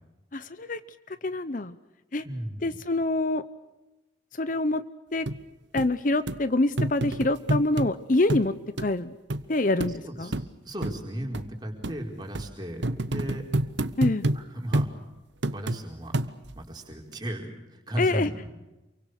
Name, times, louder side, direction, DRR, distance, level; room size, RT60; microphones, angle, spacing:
voice 1, 0.3-0.8 1.2-1.7 2.1-2.2 2.6-3.4 4.4-4.8 5.1-5.3 5.7-9.2 9.5-10.3 14.0-14.3 18.0-18.3, left 2 dB, 45° left, 14 dB, 0.7 m, -26 dB
voice 2, 2.2-2.8 10.0-10.4 10.6-13.5 14.3-14.9 15.5-16.1 16.5-18.5, right 1 dB, 20° right, 2 dB, 4.6 m, -35 dB
sound 1, 5.3-5.4 5.8-5.9 6.3-6.4 6.8-7.9 8.3-8.5 8.8-8.9 9.3-9.4 9.8-9.9 10.3-10.5 10.8-11.0 11.3-11.5 11.8-12.0 12.4-12.5 12.8-14.4 14.7-14.9 15.4-15.8 16.1-16.6 17.1-17.2, right 1 dB, 70° right, 1.0 m, -27 dB
28.5 x 24.0 x 6.5 m, 1.0 s
head